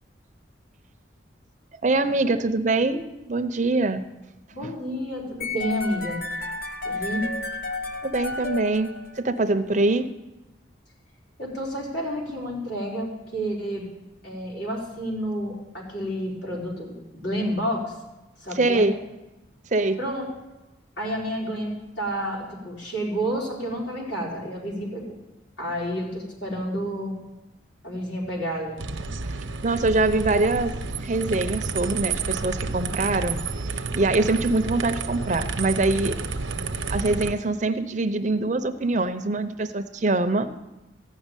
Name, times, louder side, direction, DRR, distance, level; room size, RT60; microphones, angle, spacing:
voice 1, 1.8-4.0 4.6-4.7 8.0-10.1 18.5-18.9 19.7-20.0 29.2-29.3 29.6-30.7 31.0-33.4 33.9-36.2 36.9-40.5, right 2 dB, 40° right, 9 dB, 0.6 m, -23 dB
voice 2, 4.5-6.2 6.8-7.4 11.4-13.9 14.2-17.9 18.4-18.9 20.0-20.3 21.0-25.2 25.6-27.2 27.8-28.8, equal, 70° left, -3 dB, 4.3 m, -30 dB
sound 1, 5.4-9.5, left 2 dB, 50° left, 1.0 m, -32 dB
sound 2, 28.8-37.3, right 4 dB, 85° right, 0.8 m, -30 dB
14.5 x 6.4 x 9.0 m, 1.0 s
head